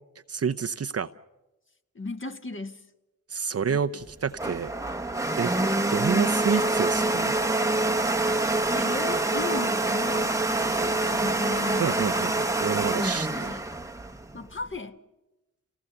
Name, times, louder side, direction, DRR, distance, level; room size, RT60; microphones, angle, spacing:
voice 1, 0.3-1.1 3.3-4.7 5.4-5.5 5.9-7.3 11.8-13.3, right 6 dB, 40° right, 10 dB, 0.8 m, -28 dB
voice 2, 1.9-2.9 3.7-4.0 8.7-12.3 13.3-13.7 14.3-15.0, left 3 dB, 35° left, 7 dB, 1.5 m, -36 dB
Domestic sounds home sounds, 4.0-14.7, right 2 dB, 10° right, 1.0 m, -26 dB
sound 1, 6.1-13.6, right 8 dB, 85° right, 1.6 m, -47 dB
29.0 x 18.0 x 6.9 m, 1.0 s
supercardioid pair, 50°, 36 cm